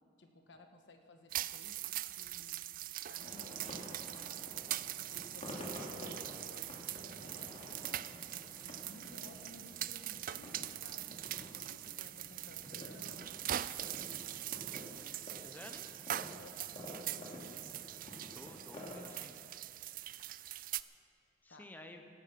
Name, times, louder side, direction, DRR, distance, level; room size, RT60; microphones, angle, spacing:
voice 1, 0.2-2.6 3.0-4.5 5.1-7.8 8.6-11.2 11.5-13.3 16.4-16.7 17.0-17.6 21.5-21.7, left 1 dB, 70° left, 5 dB, 1.5 m, -57 dB
sound 1, 1.3-20.8, right 13 dB, 50° right, 0.4 m, -42 dB
sound 2, 3.2-19.0, equal, 35° left, 2.7 m, -50 dB
voice 2, 15.4-15.9 18.3-19.3 21.4-22.0, left 1 dB, 10° left, 5 dB, 0.8 m, -52 dB
17.0 x 12.0 x 5.9 m, 2.9 s
head